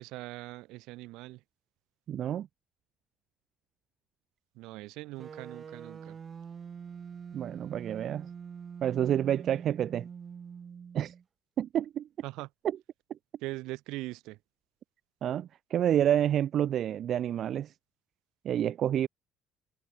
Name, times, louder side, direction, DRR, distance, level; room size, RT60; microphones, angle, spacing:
voice 1, 0.0-1.4 4.6-6.2 12.2-12.5 13.4-14.4, right 20 dB, 75° right, 2.1 m, -41 dB
voice 2, 2.1-2.5 7.3-8.3 8.8-10.1 10.9-11.1 11.6-12.1 12.6-12.8 15.2-17.7 18.4-19.1, right 10 dB, 50° right, 0.9 m, -28 dB
sound 1, 5.2-11.2, right 6 dB, 35° right, 2.8 m, -44 dB
cardioid pair, 115°, 0 cm